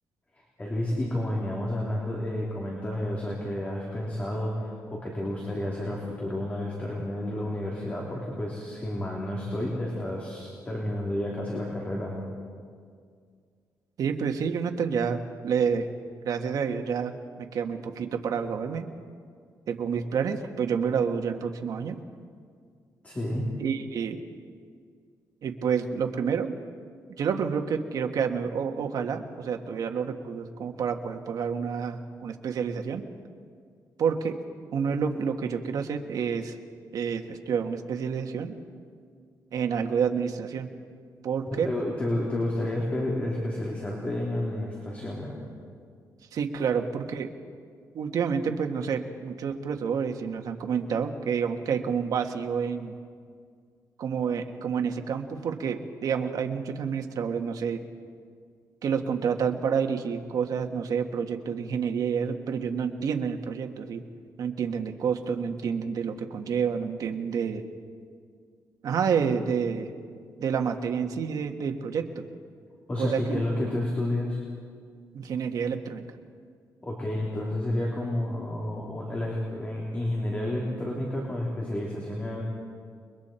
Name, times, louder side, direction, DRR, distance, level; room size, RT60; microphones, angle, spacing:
voice 1, 0.4-12.2 23.0-23.5 41.6-45.4 72.9-74.4 76.8-82.4, left 1 dB, 20° left, -3 dB, 3.2 m, -30 dB
voice 2, 14.0-15.9 16.2-17.1 17.4-18.8 19.7-22.0 23.6-24.2 25.4-26.5 27.2-33.0 34.0-34.4 34.7-36.5 36.9-38.5 39.5-40.7 41.2-41.7 46.3-47.3 47.9-53.0 54.0-57.8 58.8-64.0 64.4-67.6 68.8-69.9 70.4-72.3 73.0-73.4 75.1-76.1, right 6 dB, 65° right, 4 dB, 1.6 m, -29 dB
30.0 x 22.0 x 4.4 m, 2.1 s
cardioid pair, 140°, 7 cm